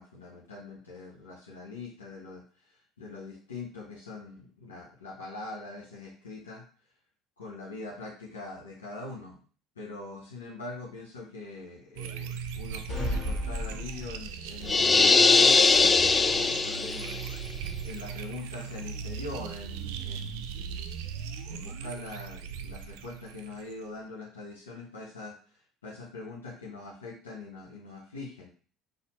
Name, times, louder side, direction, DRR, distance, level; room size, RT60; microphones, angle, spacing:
voice 1, 0.0-6.6 7.4-9.4 9.8-17.2 17.8-21.1 21.4-28.5, left 3 dB, 85° left, -4 dB, 0.8 m, -43 dB
sound 1, 12.0-23.9, right 7 dB, 70° right, 0.4 m, -39 dB
sound 2, 12.9-14.5, left 1 dB, 50° left, 2.0 m, -33 dB
sound 3, 14.7-17.2, left 4 dB, 25° left, 0.3 m, -21 dB
4.3 x 2.7 x 4.2 m, 0.41 s
hypercardioid pair, 65°, 0 cm